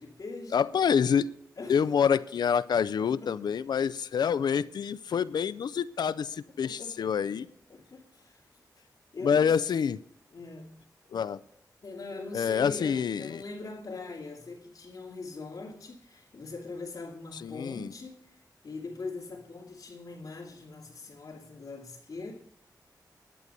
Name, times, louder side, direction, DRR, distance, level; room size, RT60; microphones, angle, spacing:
voice 1, 0.0-0.6 1.6-1.9 3.0-3.6 6.6-7.2 7.7-8.4 9.1-9.5 10.3-10.8 11.8-22.3, left 3 dB, 55° left, 2.5 m, -42 dB
voice 2, 0.5-1.3 1.7-7.5 9.2-10.0 11.1-11.4 12.3-13.4 17.4-17.9, left 7 dB, 90° left, 0.4 m, -27 dB
11.0 x 9.1 x 6.7 m
wide cardioid pair, 150°, 7 cm